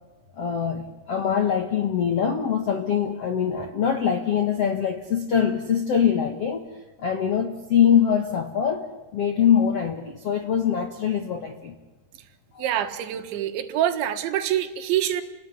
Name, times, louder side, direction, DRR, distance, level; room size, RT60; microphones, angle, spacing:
voice 1, 0.4-6.6 7.0-11.7 12.5-12.8, left 8 dB, 70° left, 6 dB, 1.4 m, -23 dB
voice 2, 12.6-15.2, right 11 dB, 85° right, 8 dB, 3.8 m, -25 dB
29.5 x 19.0 x 9.6 m, 1.2 s
omnidirectional pair, 5.2 m